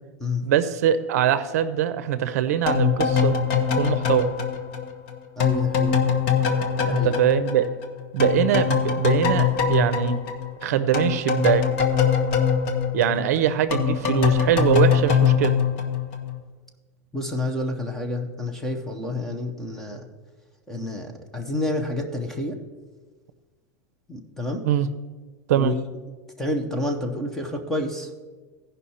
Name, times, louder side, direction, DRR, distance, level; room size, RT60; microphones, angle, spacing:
voice 1, 0.4-3.3 3.8-4.3 6.9-7.7 8.1-10.2 10.6-11.6 12.9-15.5 24.6-24.9 25.5-25.7, right 10 dB, 65° right, 13 dB, 0.6 m, -22 dB
sound 1, 2.7-7.9 8.2-16.4, left 7 dB, 45° left, 0.9 m, -22 dB
voice 2, 5.4-5.9 6.8-7.1 17.1-20.0 20.7-22.6 24.1-24.6 25.5-25.8 26.4-28.1, left 2 dB, 5° left, 3 dB, 0.6 m, -29 dB
15.5 x 5.4 x 4.2 m, 1.3 s
supercardioid pair, 175°, 9 cm